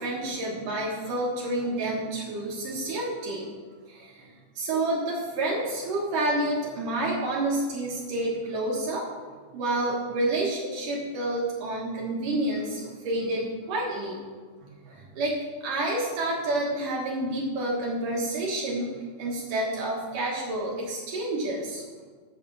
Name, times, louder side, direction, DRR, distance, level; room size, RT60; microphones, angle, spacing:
voice 1, 0.0-3.5 3.9-9.1 9.5-14.2 14.6-15.3 15.6-21.8, right 2 dB, 65° right, -3 dB, 2.1 m, -29 dB
8.6 x 7.5 x 6.2 m, 1.4 s
omnidirectional pair, 5.7 m